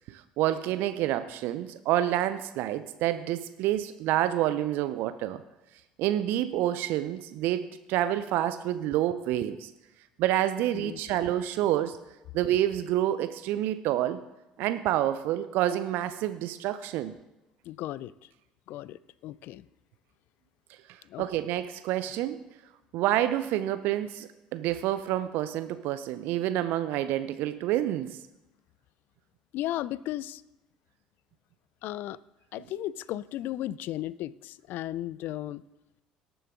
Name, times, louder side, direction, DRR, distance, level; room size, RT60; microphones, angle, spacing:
voice 1, 0.1-5.4 6.0-9.7 10.2-12.0 12.3-14.2 14.6-17.1 20.9-22.4 22.9-28.2, right 12 dB, 60° right, 12 dB, 0.5 m, -28 dB
voice 2, 17.6-18.1 18.7-19.7 21.0-21.3 29.5-30.4 31.8-32.2 32.5-35.6, left 14 dB, 55° left, 20 dB, 0.4 m, -35 dB
18.5 x 7.1 x 3.7 m, 0.98 s
figure-of-eight pair, 60°, 4 cm